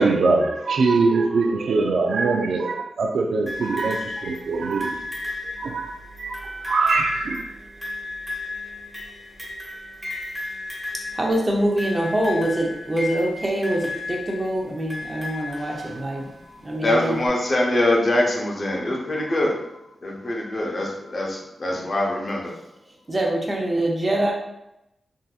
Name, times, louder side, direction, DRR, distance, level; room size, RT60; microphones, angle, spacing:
voice 1, 0.0-5.0 5.6-5.9 6.2-6.4 6.7-7.4, right 3 dB, 85° right, 4 dB, 0.3 m, -22 dB
sound 1, 3.5-16.3 17.3-17.4, left 2 dB, 5° right, 1.1 m, -34 dB
voice 2, 11.1-16.3 16.6-17.2 23.1-24.3, right 1 dB, 25° right, -1 dB, 0.6 m, -24 dB
voice 3, 16.2-19.7 20.0-22.5, left 1 dB, 40° left, -1 dB, 0.7 m, -24 dB
3.8 x 2.6 x 2.4 m, 0.89 s
wide cardioid pair, 125°, 0 cm